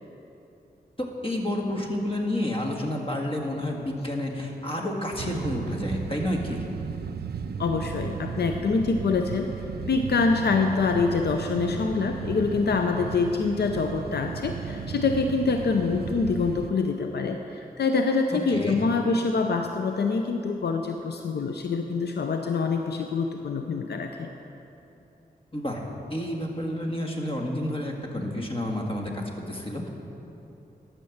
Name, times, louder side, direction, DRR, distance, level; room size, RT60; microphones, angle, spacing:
voice 1, 1.0-6.6 18.3-18.8 25.5-29.9, left 1 dB, 30° left, 0 dB, 1.8 m, -30 dB
sound 1, 5.2-16.7, right 6 dB, 70° right, 0.5 m, -35 dB
voice 2, 7.6-9.5 9.9-24.3, left 4 dB, 75° left, 4 dB, 0.6 m, -25 dB
12.0 x 6.8 x 7.2 m, 2.9 s
cardioid pair, 60°, 17 cm